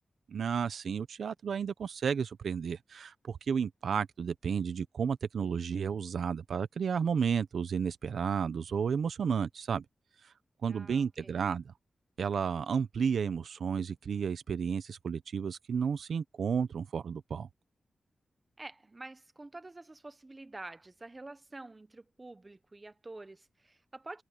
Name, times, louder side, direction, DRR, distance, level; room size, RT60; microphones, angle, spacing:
voice 1, 0.3-9.8 10.6-11.7 12.2-17.5, right 6 dB, 85° right, 0.7 m, -32 dB
voice 2, 10.7-11.4 18.6-24.2, right 2 dB, 25° right, 1.0 m, -48 dB
wide cardioid pair, 105°, 0 cm